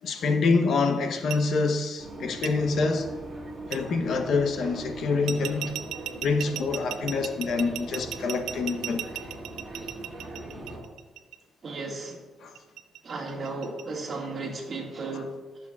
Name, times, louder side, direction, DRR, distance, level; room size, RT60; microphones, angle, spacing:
voice 1, 0.0-3.1 3.7-5.8 6.2-9.1 12.4-12.5, left 4 dB, 65° left, 0.9 m, -26 dB
sound 1, 1.3-1.4 2.4-2.5 3.7-3.8 5.3-11.4 12.6-13.8, right 12 dB, 90° right, 0.4 m, -35 dB
sound 2, 2.0-10.8, right 1 dB, 30° right, 2.4 m, -40 dB
voice 2, 11.6-12.2 13.0-15.4, right 3 dB, 45° right, 1.9 m, -34 dB
13.5 x 7.2 x 2.4 m
cardioid pair, 90°, 0 cm